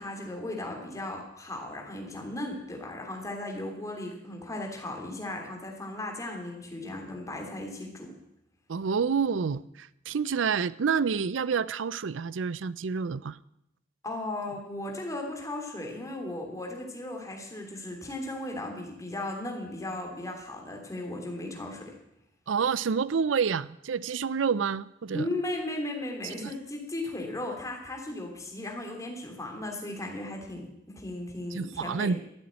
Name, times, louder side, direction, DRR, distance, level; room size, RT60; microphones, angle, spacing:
voice 1, 0.0-8.1 14.0-21.9 25.1-32.2, left 1 dB, 15° left, 1 dB, 3.2 m, -36 dB
voice 2, 8.7-13.4 22.5-25.3 26.2-26.5 31.5-32.2, right 6 dB, 85° right, 19 dB, 0.5 m, -28 dB
13.5 x 8.7 x 8.8 m, 0.81 s
head